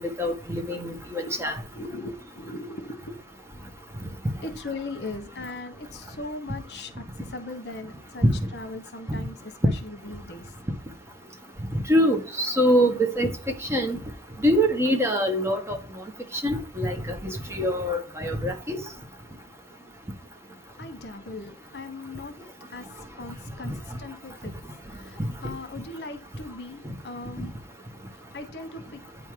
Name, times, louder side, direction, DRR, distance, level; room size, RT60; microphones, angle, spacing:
voice 1, 0.0-1.5 8.2-8.5 11.7-13.3 13.7-14.0 14.4-15.8 16.3-18.8 23.6-23.8 27.4-27.5, equal, 15° right, 1.1 m, -24 dB
voice 2, 1.3-3.2 4.4-8.3 8.5-9.5 9.8-10.5 20.3-27.7 28.0-29.1, left 2 dB, 70° left, 1.1 m, -39 dB
9.0 x 3.7 x 4.7 m
head